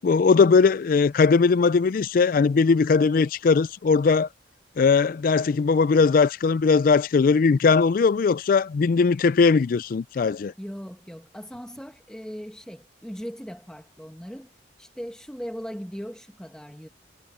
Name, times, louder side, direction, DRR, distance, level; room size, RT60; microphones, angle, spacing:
voice 1, 0.0-4.3 4.8-10.5, left 4 dB, 50° left, 0.3 m, -19 dB
voice 2, 10.6-14.5 14.8-16.9, equal, 5° left, 1.5 m, -38 dB
head